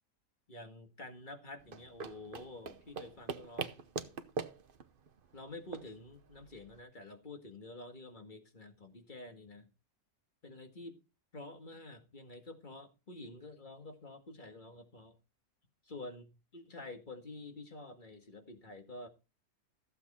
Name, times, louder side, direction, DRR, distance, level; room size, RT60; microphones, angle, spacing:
voice 1, 0.5-3.8 5.3-9.7 10.4-11.0 11.3-15.2 15.8-19.1, left 2 dB, 35° left, 2.0 m, -49 dB
sound 1, 1.6-6.8, right 5 dB, 45° right, 0.9 m, -43 dB
14.5 x 8.1 x 4.2 m
omnidirectional pair, 1.5 m